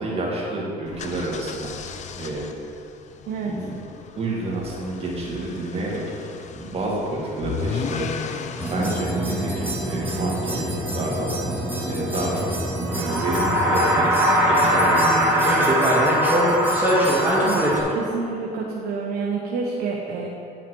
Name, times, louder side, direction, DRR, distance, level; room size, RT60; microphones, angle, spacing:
voice 1, 0.0-2.5 3.4-3.7 4.2-8.3 8.6-10.6 10.9-11.4 11.8-12.5 12.9-16.1, right 2 dB, 35° right, -4 dB, 2.0 m, -29 dB
sound 1, 0.9-8.9, left 6 dB, 45° left, 0.5 m, -35 dB
Prime Minister Grinch, 8.6-17.8, equal, 10° right, 1.6 m, -21 dB
voice 2, 17.9-20.3, right 5 dB, 70° right, -2 dB, 1.0 m, -28 dB
9.7 x 5.7 x 4.6 m, 2.6 s
cardioid pair, 110°, 17 cm